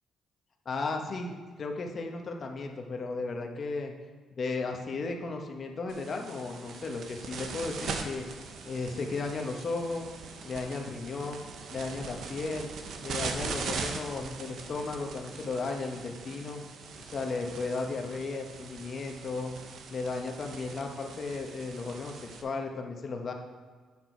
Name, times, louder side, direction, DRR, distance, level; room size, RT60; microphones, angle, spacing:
voice 1, 0.6-3.9 4.3-8.3 8.6-10.1 10.4-11.4 11.7-12.7 13.0-16.6 17.1-19.5 19.9-22.2 22.4-23.3, left 3 dB, 45° left, 3 dB, 1.2 m, -35 dB
sound 1, 5.9-22.4, right 5 dB, 70° right, 0.9 m, -41 dB
9.0 x 6.3 x 4.5 m, 1.5 s
cardioid pair, 90°, 0 cm